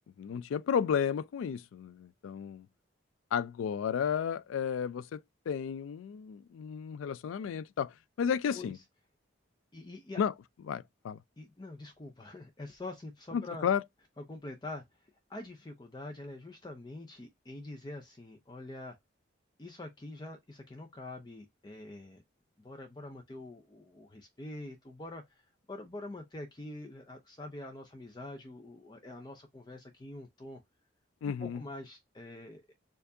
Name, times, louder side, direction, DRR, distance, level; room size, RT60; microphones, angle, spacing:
voice 1, 0.2-2.7 3.3-5.2 5.5-8.8 10.2-10.3 10.7-11.2 13.3-13.8 31.2-31.6, left 7 dB, 90° left, 0.3 m, -32 dB
voice 2, 9.7-10.2 11.4-13.7 14.2-19.0 19.6-22.2 22.6-25.4 25.7-30.6 31.2-32.7, left 2 dB, 20° left, 0.5 m, -45 dB
4.5 x 2.5 x 2.7 m
head